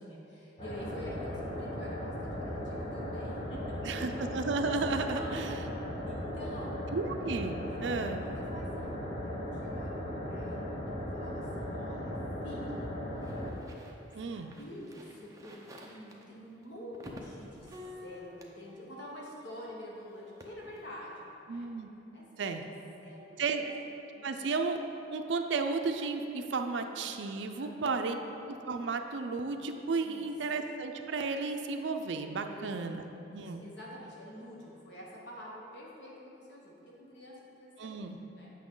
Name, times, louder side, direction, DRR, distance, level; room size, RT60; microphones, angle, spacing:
voice 1, 0.0-4.2 5.1-5.8 6.1-6.8 7.7-10.7 11.0-12.1 12.4-13.0 14.3-15.6 15.8-21.7 22.1-22.2 22.6-22.7 23.0-23.7 24.2-24.3 27.6-28.2 30.0-30.3 32.4-32.9 33.3-38.5, equal, 65° left, -4 dB, 1.2 m, -48 dB
sound 1, 0.6-13.5, equal, 30° left, 1.0 m, -37 dB
voice 2, 3.9-5.6 6.9-8.2 14.1-14.5 21.5-21.9 22.4-22.6 23.4-23.7 24.2-24.8 25.1-28.2 28.5-33.0 33.3-33.6 37.8-38.2, right 4 dB, 70° right, 5 dB, 0.4 m, -33 dB
sound 2, 12.5-19.8 20.1-20.9, left 1 dB, 15° right, 0.5 m, -51 dB
8.3 x 5.9 x 3.8 m, 2.9 s
head